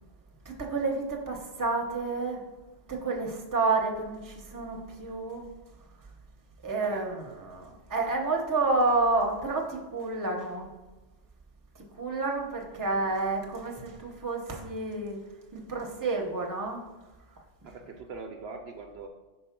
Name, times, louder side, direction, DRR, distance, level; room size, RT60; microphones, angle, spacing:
voice 1, 0.4-2.4 2.9-5.5 6.6-10.7 12.0-15.2 15.5-16.8, right 3 dB, 20° right, 1 dB, 0.8 m, -30 dB
voice 2, 17.6-19.1, right 4 dB, 65° right, 4 dB, 0.8 m, -42 dB
4.7 x 4.4 x 5.8 m, 1.2 s
omnidirectional pair, 1.2 m